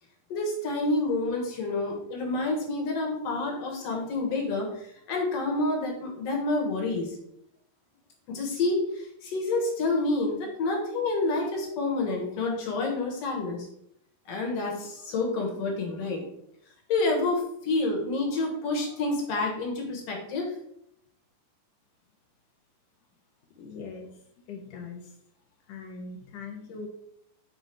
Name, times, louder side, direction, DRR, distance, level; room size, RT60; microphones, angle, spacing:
voice 1, 0.3-7.1 8.3-13.7 14.3-16.2 16.9-20.5, left 2 dB, 55° left, 1 dB, 2.0 m, -28 dB
voice 2, 23.6-25.2 25.7-26.9, left 4 dB, 75° left, 3 dB, 2.1 m, -41 dB
5.6 x 4.0 x 4.5 m, 0.73 s
omnidirectional pair, 4.0 m